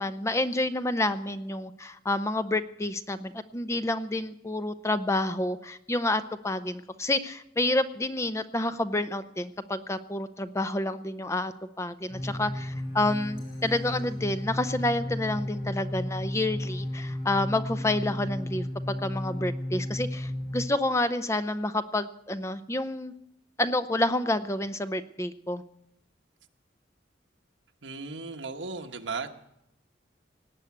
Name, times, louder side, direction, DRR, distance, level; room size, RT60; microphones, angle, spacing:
voice 1, 0.0-11.5 11.8-23.1 23.6-25.6, left 2 dB, 15° left, 11 dB, 0.5 m, -29 dB
sound 1, 12.1-20.7, left 1 dB, 55° left, 6.6 m, -33 dB
voice 2, 27.8-29.4, right 4 dB, 85° right, 5 dB, 1.2 m, -36 dB
18.0 x 8.0 x 8.5 m, 0.82 s
head